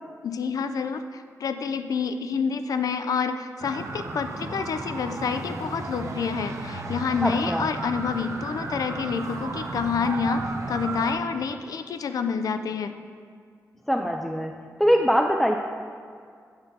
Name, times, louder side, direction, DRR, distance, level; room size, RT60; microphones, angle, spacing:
voice 1, 0.2-10.4 10.7-13.0, left 5 dB, 70° left, 9 dB, 0.4 m, -28 dB
sound 1, 3.6-11.1, right 2 dB, 55° right, 0.8 m, -34 dB
voice 2, 7.2-7.7 13.9-14.5 14.8-15.6, equal, 5° left, 2 dB, 0.3 m, -22 dB
8.7 x 3.9 x 6.7 m, 2.1 s
wide cardioid pair, 150°, 6 cm